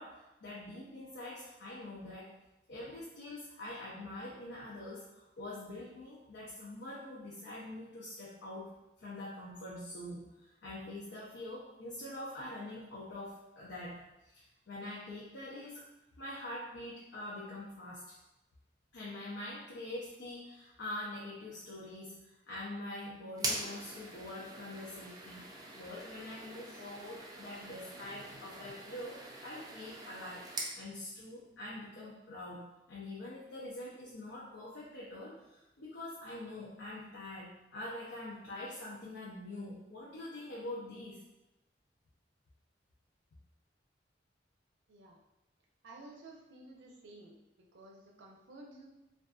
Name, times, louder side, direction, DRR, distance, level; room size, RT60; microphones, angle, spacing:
voice 1, 0.0-2.3 2.7-8.7 9.0-15.8 16.2-18.1 18.9-25.4 25.7-30.5 30.7-41.2, left 1 dB, 80° left, -6 dB, 0.5 m, -45 dB
sound 1, 23.3-30.8, right 2 dB, 20° right, 0.4 m, -43 dB
voice 2, 44.9-45.2 45.8-47.4 47.7-48.9, right 2 dB, 75° right, -1 dB, 0.6 m, -53 dB
2.5 x 2.3 x 2.3 m, 0.98 s
head